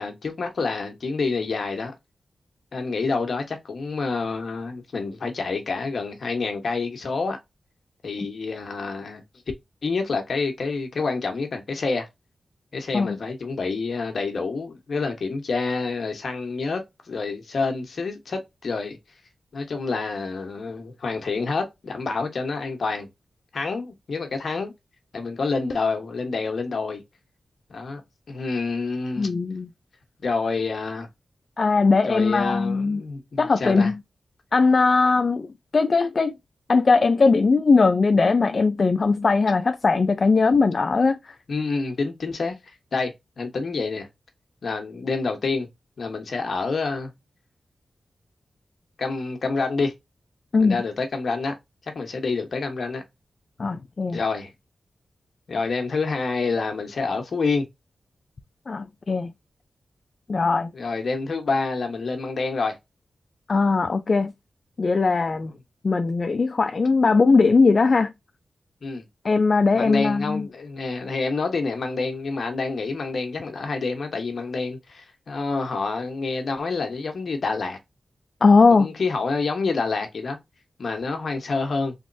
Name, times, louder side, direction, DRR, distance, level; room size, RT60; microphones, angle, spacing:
voice 1, 0.0-1.9 2.7-7.4 8.0-9.2 9.8-12.1 12.7-19.0 19.5-23.1 23.5-24.7 25.1-27.0 27.7-28.0 28.3-29.3 30.2-31.1 32.1-33.9 41.5-44.1 44.6-45.7 46.0-47.1 49.0-49.9 50.6-51.5 51.9-53.0 54.1-54.5 55.5-57.7 60.7-62.8 68.8-69.0 69.7-77.8 78.7-80.4 80.8-81.9, left 4 dB, 65° left, 1.1 m, -28 dB
voice 2, 29.2-29.7 31.6-33.0 33.4-34.0 34.5-35.5 35.7-36.3 36.7-41.3 50.5-50.8 53.6-54.2 58.7-59.3 60.3-60.7 63.5-64.3 64.8-65.5 65.8-68.1 69.2-70.5 78.4-78.9, left 4 dB, 50° left, 0.3 m, -19 dB
3.5 x 3.0 x 2.6 m
wide cardioid pair, 100°, 0 cm